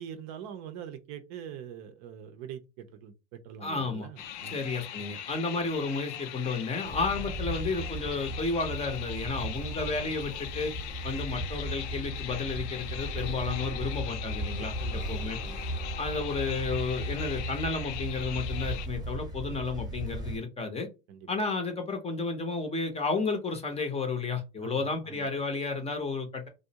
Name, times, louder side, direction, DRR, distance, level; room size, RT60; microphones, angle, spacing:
voice 1, 0.0-4.6 14.6-15.6 21.1-21.3 24.6-25.3, right 8 dB, 50° right, 0.6 m, -44 dB
voice 2, 3.6-4.1 4.5-10.7 11.0-15.4 16.0-20.9 21.3-26.5, left 4 dB, 20° left, 0.6 m, -32 dB
sound 1, 4.2-18.9, left 11 dB, 80° left, 0.5 m, -41 dB
sound 2, 6.8-20.4, right 1 dB, 10° right, 0.9 m, -36 dB
2.4 x 2.0 x 2.8 m
hypercardioid pair, 95°, 34 cm